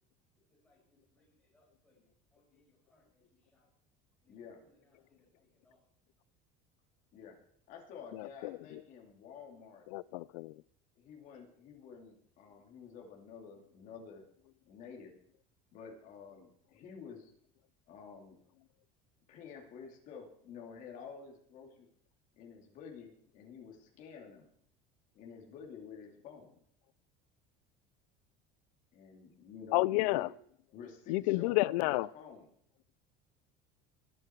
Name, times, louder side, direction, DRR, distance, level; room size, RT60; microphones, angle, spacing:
voice 1, 0.5-3.7 4.2-5.8, left 2 dB, 5° left, -6 dB, 5.8 m, -72 dB
voice 2, 4.3-4.6 7.1-7.3 7.7-9.8 11.0-14.2 14.7-15.1 15.7-17.3 17.9-18.4 19.3-21.9 22.3-24.5 25.1-26.6 28.9-30.3 30.7-32.5, left 6 dB, 40° left, 0 dB, 2.9 m, -50 dB
voice 3, 8.2-8.6 9.9-10.5 29.7-30.3 31.1-32.1, left 21 dB, 90° left, 22 dB, 0.5 m, -30 dB
22.0 x 7.8 x 4.6 m, 0.67 s
cardioid pair, 175°, 20 cm